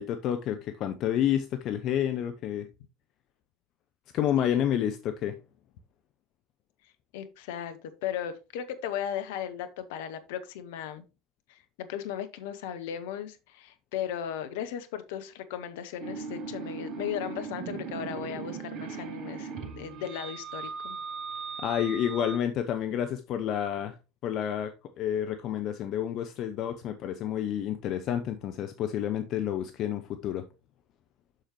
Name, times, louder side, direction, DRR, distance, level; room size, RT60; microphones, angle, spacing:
voice 1, 0.0-2.7 4.1-5.4 21.6-24.0 24.2-30.4, left 10 dB, 45° left, 0.7 m, -29 dB
voice 2, 7.1-11.0 11.5-21.0, left 9 dB, 65° left, 1.0 m, -36 dB
sound 1, 16.0-22.4, right 5 dB, 45° right, 1.1 m, -38 dB
7.5 x 6.5 x 3.1 m
figure-of-eight pair, 70°, 0 cm